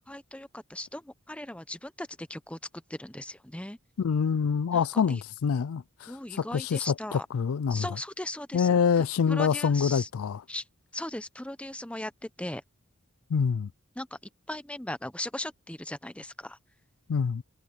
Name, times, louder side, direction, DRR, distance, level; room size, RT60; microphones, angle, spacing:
voice 1, 0.1-2.6 2.9-3.8 4.7-5.2 6.1-7.3 7.7-10.1 10.5-10.7 10.9-12.6 14.0-16.6, left 1 dB, 5° left, 0.7 m, -38 dB
voice 2, 4.0-6.1 6.4-7.9 8.5-10.4 13.3-13.7 17.1-17.4, left 6 dB, 80° left, 0.4 m, -26 dB
head